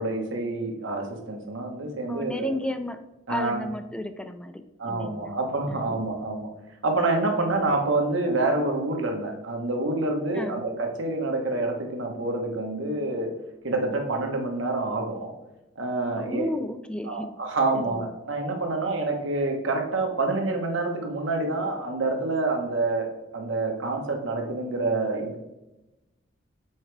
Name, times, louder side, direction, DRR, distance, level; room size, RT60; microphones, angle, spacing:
voice 1, 0.0-2.5 3.3-3.6 4.8-6.5 6.8-13.3 13.6-15.3 15.8-16.5 17.0-23.1 23.3-25.4, right 2 dB, 75° right, 2 dB, 1.2 m, -27 dB
voice 2, 2.1-3.0 3.3-4.6 4.9-5.4 5.7-6.0 7.4-7.6 10.3-10.6 16.1-17.3 17.7-18.1, left 1 dB, 5° left, 9 dB, 0.4 m, -33 dB
7.2 x 4.6 x 3.4 m, 0.98 s
head